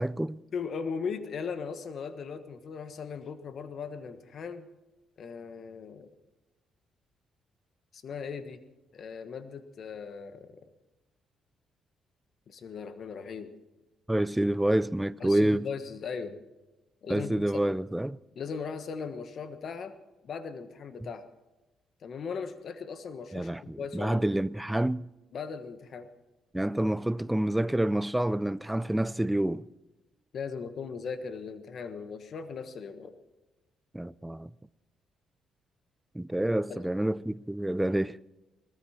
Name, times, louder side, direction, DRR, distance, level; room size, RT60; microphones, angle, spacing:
voice 1, 0.0-0.4 14.1-15.7 17.1-18.2 23.3-25.1 26.5-29.7 33.9-34.5 36.1-38.2, right 1 dB, 5° right, 0.4 m, -28 dB
voice 2, 0.5-4.7 5.2-6.1 7.9-8.6 8.9-10.6 12.5-13.5 15.2-16.4 17.0-17.7 18.3-19.9 20.2-21.2 22.0-24.2 25.3-26.1 30.3-33.1 36.7-36.9, left 5 dB, 55° left, 1.3 m, -38 dB
19.5 x 14.5 x 4.3 m
cardioid pair, 90°, 0 cm